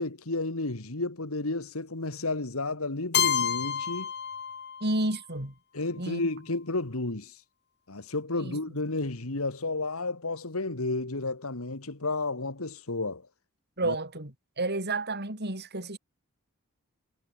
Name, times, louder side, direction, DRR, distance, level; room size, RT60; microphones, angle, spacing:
voice 1, 0.0-4.1 5.7-7.4 7.9-13.3 13.8-14.0, left 2 dB, 80° left, 2.1 m, -32 dB
Keyboard (musical), 3.1-5.1, left 8 dB, 50° left, 5.2 m, -29 dB
voice 2, 4.8-5.5 6.0-6.2 8.4-8.6 13.8-16.0, right 2 dB, 50° right, 6.4 m, -31 dB
head